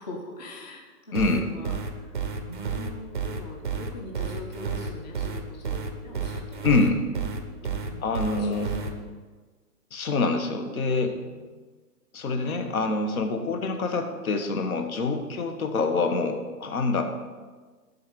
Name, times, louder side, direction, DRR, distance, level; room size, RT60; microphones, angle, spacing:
voice 1, 0.0-6.8 7.6-8.0 8.3-9.1 11.2-11.5 15.0-15.1, left 1 dB, 25° left, 0 dB, 0.7 m, -43 dB
voice 2, 1.1-1.4 6.6-7.0 8.0-8.7 9.9-11.2 12.1-17.0, left 3 dB, 60° left, 6 dB, 1.2 m, -26 dB
sound 1, 1.1-8.9, right 6 dB, 35° right, 0.5 m, -31 dB
11.0 x 4.0 x 6.1 m, 1.4 s
hypercardioid pair, 175°, 47 cm